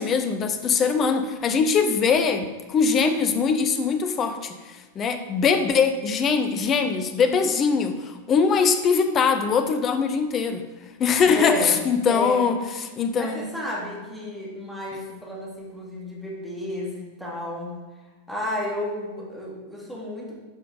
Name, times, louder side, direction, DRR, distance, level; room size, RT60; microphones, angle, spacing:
voice 1, 0.0-10.6 11.0-13.5, left 5 dB, 30° left, 8 dB, 0.8 m, -22 dB
voice 2, 11.3-11.7 12.0-12.5 13.2-17.7 18.3-20.4, left 1 dB, ahead, -5 dB, 2.5 m, -32 dB
11.5 x 5.7 x 4.0 m, 1.3 s
figure-of-eight pair, 90°, 0 cm